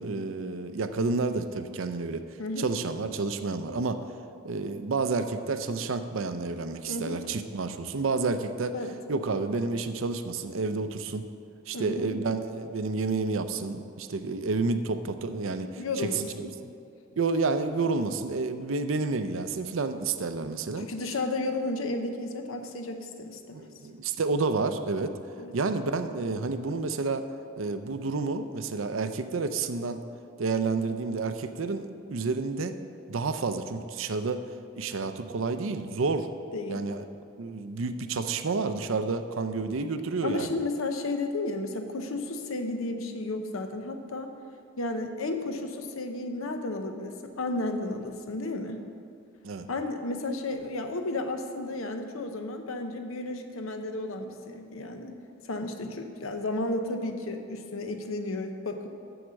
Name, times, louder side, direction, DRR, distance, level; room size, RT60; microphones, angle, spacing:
voice 1, 0.0-2.2 2.6-4.0 4.4-8.8 9.1-11.2 11.7-16.7 17.2-20.9 23.5-25.2 25.5-27.2 27.6-30.0 30.4-32.8 33.1-34.4 34.8-36.3 36.7-37.0 37.4-40.6 49.4-49.7, right 3 dB, 75° right, 10 dB, 0.6 m, -30 dB
voice 2, 6.9-7.2 8.7-8.9 11.7-12.1 15.6-16.5 20.8-23.6 25.4-25.5 36.5-36.9 40.2-44.3 44.8-48.8 49.7-55.1 55.5-58.9, left 2 dB, 90° left, 6 dB, 0.8 m, -33 dB
7.8 x 7.2 x 6.4 m, 2.4 s
head